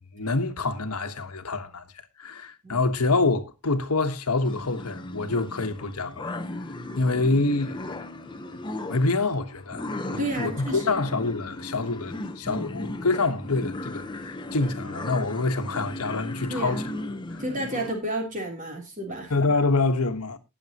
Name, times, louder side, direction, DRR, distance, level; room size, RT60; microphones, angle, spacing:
voice 1, 0.1-1.8 2.2-6.3 7.0-7.8 8.9-16.8 17.3-17.4 19.3-20.4, left 3 dB, 85° left, 1.3 m, -26 dB
sound 1, 4.4-17.9, left 2 dB, 20° left, 0.9 m, -36 dB
voice 2, 10.2-10.9 16.5-16.8 17.4-19.3, right 1 dB, 35° right, 3.4 m, -31 dB
18.5 x 7.1 x 3.0 m
head